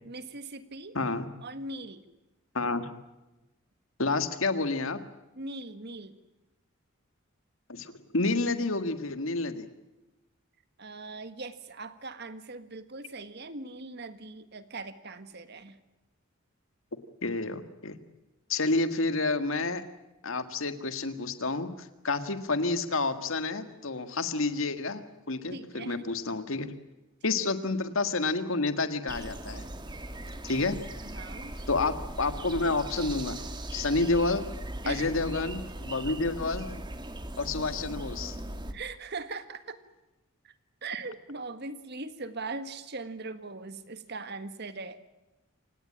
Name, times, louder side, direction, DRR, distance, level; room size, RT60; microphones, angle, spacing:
voice 1, 0.0-1.0 1.4-2.1 5.3-6.1 10.8-15.8 25.5-26.0 27.2-27.3 31.0-31.5 34.8-35.1 38.7-39.8 40.4-40.5 40.8-45.0, right 3 dB, 50° right, 11 dB, 1.7 m, -40 dB
voice 2, 0.9-1.3 2.5-2.9 4.0-5.0 7.7-9.7 17.2-18.0 18.5-19.8 20.2-26.7 27.2-29.7 30.4-30.8 31.7-33.4 33.7-34.4 34.8-36.7 37.4-38.4, left 3 dB, 75° left, 10 dB, 1.8 m, -29 dB
sound 1, 29.1-38.7, right 1 dB, 20° right, 1.8 m, -39 dB
28.0 x 17.5 x 8.8 m, 1.0 s
head